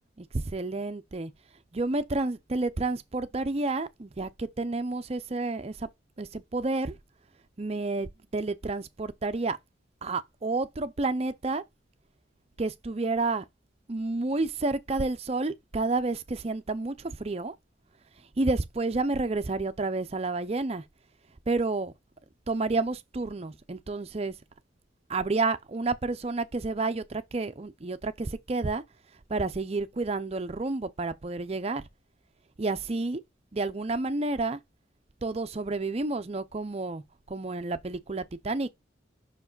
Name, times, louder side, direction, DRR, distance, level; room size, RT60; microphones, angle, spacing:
voice 1, 0.2-1.3 1.7-5.9 6.2-7.0 7.6-9.6 10.0-11.6 12.6-13.4 13.9-17.6 18.4-20.8 21.5-21.9 22.5-24.3 25.1-28.8 29.3-31.8 32.6-33.2 33.5-34.6 35.2-37.0 37.3-38.7, right 3 dB, 35° right, 0.5 m, -30 dB
5.8 x 4.8 x 3.8 m
head